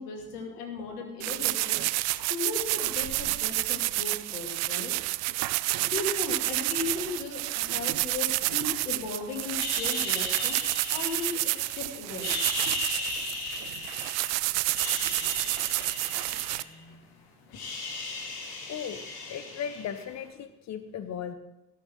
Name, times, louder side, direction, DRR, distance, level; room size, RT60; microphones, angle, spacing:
voice 1, 0.0-1.8 2.1-4.9 5.9-12.4, left 4 dB, 70° left, 2 dB, 2.7 m, -36 dB
sound 1, 1.2-16.6, right 21 dB, 35° right, 0.4 m, -29 dB
sound 2, 9.6-11.7 12.1-14.3 14.7-17.1 17.3-20.2, left 3 dB, 50° left, 2.6 m, -37 dB
sound 3, 10.4-13.7, right 4 dB, 85° right, 1.8 m, -50 dB
voice 2, 18.7-21.3, left 8 dB, 35° left, 11 dB, 1.2 m, -37 dB
17.0 x 6.8 x 5.8 m, 0.98 s
figure-of-eight pair, 60°, 49 cm